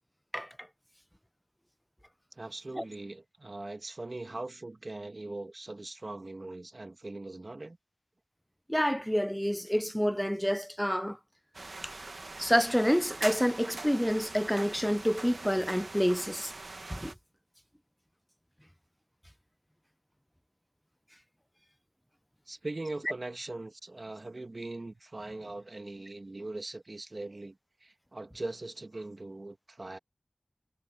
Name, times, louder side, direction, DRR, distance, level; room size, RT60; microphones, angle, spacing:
voice 1, 2.3-7.8 22.5-30.0, right 2 dB, 60° right, 1.7 m, -41 dB
voice 2, 8.7-11.2 12.4-16.5 16.9-17.1, equal, 5° left, 0.6 m, -28 dB
sound 1, 11.5-17.1, right 3 dB, 75° right, 1.8 m, -42 dB
wide cardioid pair, 40°, 0 cm